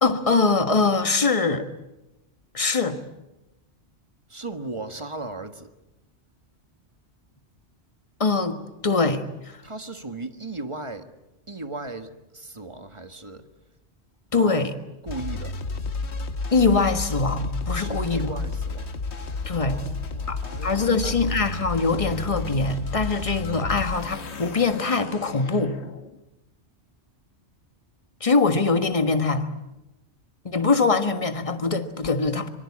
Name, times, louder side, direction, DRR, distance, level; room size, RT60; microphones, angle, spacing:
voice 1, 0.0-1.6 2.5-3.0 8.2-9.6 14.3-14.7 16.5-18.3 19.4-19.8 20.3-25.8 28.2-29.5 30.4-32.5, left 4 dB, 30° left, 8 dB, 1.5 m, -23 dB
voice 2, 4.3-5.7 9.6-11.1 11.5-13.5 14.4-14.7 15.0-15.5 17.7-18.9 19.6-21.4, right 2 dB, 25° right, 8 dB, 1.5 m, -37 dB
sound 1, 15.1-26.1, left 3 dB, 70° left, 1.6 m, -32 dB
24.5 x 24.0 x 8.6 m, 0.97 s
omnidirectional pair, 1.2 m